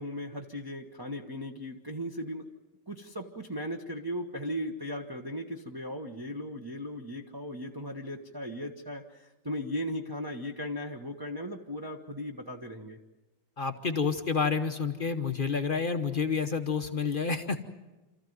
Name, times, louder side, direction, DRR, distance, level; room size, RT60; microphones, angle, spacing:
voice 1, 0.0-2.5 2.9-13.0, equal, 15° right, 0 dB, 0.9 m, -37 dB
voice 2, 13.6-17.6, left 5 dB, 35° left, 7 dB, 0.9 m, -29 dB
27.0 x 14.5 x 9.3 m, 1.1 s
omnidirectional pair, 2.0 m